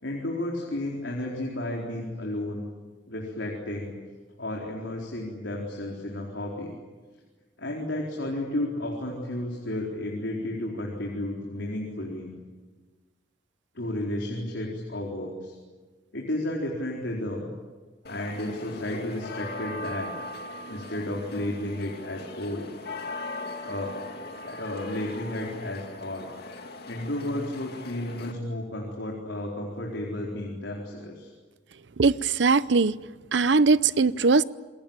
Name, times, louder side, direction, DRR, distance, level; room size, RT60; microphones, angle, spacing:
voice 1, 0.0-2.7 3.1-3.9 4.4-6.8 7.6-12.3 13.7-15.5 16.1-17.5 18.0-20.1 20.7-22.7 23.6-24.0 24.5-26.3 26.8-31.3, left 1 dB, 80° left, -1 dB, 4.3 m, -32 dB
sound 1, 18.0-28.3, left 2 dB, 60° left, 2.5 m, -39 dB
voice 2, 32.0-32.9 33.3-34.4, right 4 dB, 75° right, 17 dB, 0.7 m, -20 dB
27.0 x 22.0 x 8.9 m, 1.3 s
head